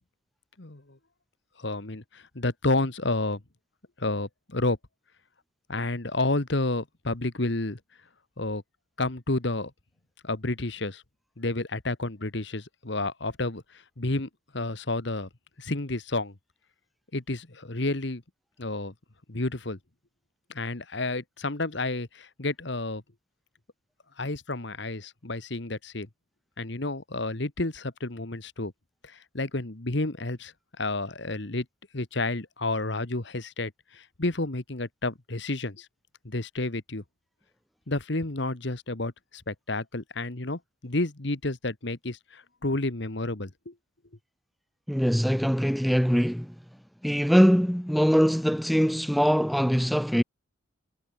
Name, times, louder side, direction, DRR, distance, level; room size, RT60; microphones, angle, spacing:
voice 1, 1.6-3.4 4.0-4.8 5.7-7.8 8.4-8.6 9.0-9.7 10.2-11.0 11.4-13.6 14.0-14.3 14.5-15.3 15.6-16.3 17.1-18.2 18.6-18.9 19.3-19.8 20.5-23.0 24.2-26.1 26.6-28.7 29.3-30.5 30.8-31.6 31.9-35.9 36.2-37.0 37.9-43.7, left 2 dB, 60° left, 1.5 m, -30 dB
voice 2, 44.9-46.5 47.0-50.2, equal, ahead, 1.0 m, -22 dB
head